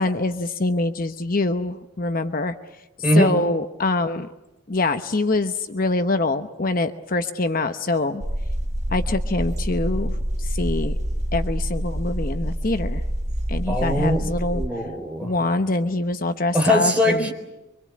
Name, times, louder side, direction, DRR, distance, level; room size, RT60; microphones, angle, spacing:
voice 1, 0.0-2.5 3.1-4.3 4.7-8.2 8.9-10.9 11.3-13.0 13.5-14.6 15.2-17.3, left 2 dB, 45° left, 8 dB, 0.9 m, -24 dB
sound 1, 8.2-14.7, equal, 35° right, 1.3 m, -26 dB
voice 2, 13.7-14.2 14.5-15.3 16.5-17.3, equal, 5° right, 3 dB, 4.0 m, -21 dB
25.5 x 24.5 x 8.5 m, 0.97 s
head